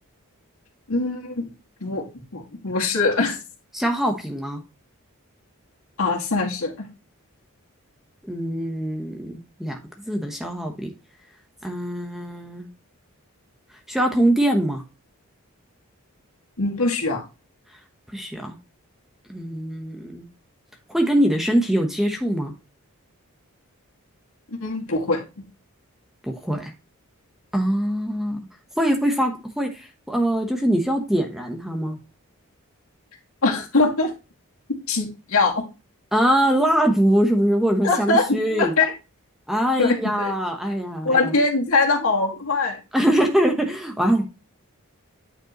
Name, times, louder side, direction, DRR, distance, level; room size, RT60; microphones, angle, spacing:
voice 1, 0.9-1.5 1.8-2.0 2.3-3.4 6.0-6.9 16.6-17.2 24.5-25.5 33.4-34.1 34.9-35.6 37.8-38.9 39.8-40.3 41.0-42.8, left 3 dB, 75° left, 0 dB, 2.1 m, -22 dB
voice 2, 3.7-4.6 8.2-10.9 11.6-12.7 13.9-14.8 18.1-18.5 19.3-20.3 20.9-22.5 26.2-26.7 27.5-28.4 28.8-32.0 36.1-38.8 39.5-41.3 42.9-44.2, equal, ahead, 2 dB, 0.9 m, -23 dB
9.2 x 5.2 x 3.0 m, 0.28 s
head